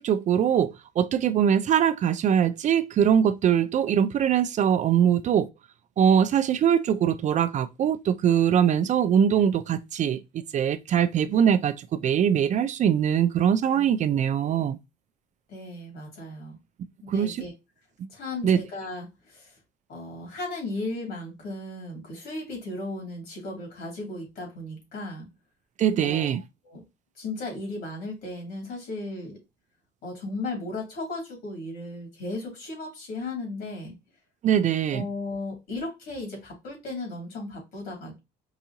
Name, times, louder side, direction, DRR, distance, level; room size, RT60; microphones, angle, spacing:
voice 1, 0.0-5.5 6.0-14.8 17.1-17.4 18.0-18.1 18.4-18.6 25.8-26.4 34.4-35.0, right 8 dB, 45° right, 0.4 m, -22 dB
voice 2, 15.5-16.6 17.0-17.5 18.1-19.5 19.9-25.3 26.0-26.8 27.2-29.4 30.0-33.9 34.9-38.2, left 2 dB, 70° left, 2.6 m, -36 dB
4.7 x 2.6 x 2.8 m
cardioid pair, 110°, 17 cm